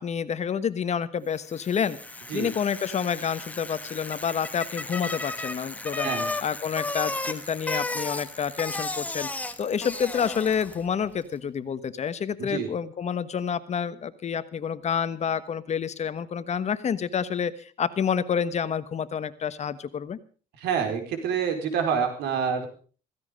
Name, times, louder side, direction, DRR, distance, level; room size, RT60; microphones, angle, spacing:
voice 1, 0.0-6.1 6.4-9.3 9.6-20.2, left 7 dB, 40° left, 14 dB, 1.3 m, -28 dB
Bicycle, 1.4-10.9, left 2 dB, 10° left, 1.5 m, -34 dB
voice 2, 12.4-12.7 20.6-22.7, right 7 dB, 80° right, 6 dB, 4.8 m, -27 dB
16.0 x 15.5 x 5.3 m, 0.39 s
cardioid pair, 110°, 17 cm